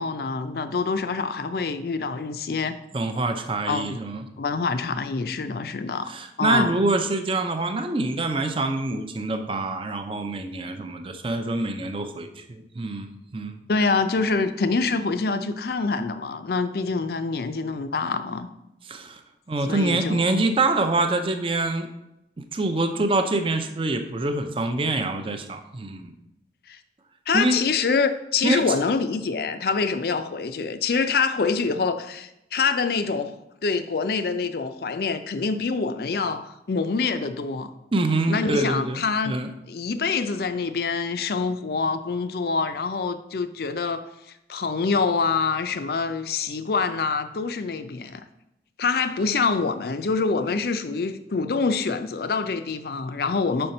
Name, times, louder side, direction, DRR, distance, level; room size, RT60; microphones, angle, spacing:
voice 1, 0.0-2.8 3.7-4.0 4.4-6.1 6.4-6.7 13.7-18.5 19.7-20.4 26.7-26.8 27.3-33.3 33.6-37.7 38.3-39.3 39.7-44.0 44.5-48.2 48.8-53.7, left 4 dB, 60° left, 10 dB, 0.5 m, -25 dB
voice 2, 2.9-4.3 6.0-13.6 18.9-19.2 19.5-21.9 22.5-26.1 27.3-27.6 28.4-28.6 37.9-39.5, right 2 dB, 30° right, 7 dB, 0.5 m, -25 dB
5.7 x 4.3 x 5.3 m, 0.85 s
head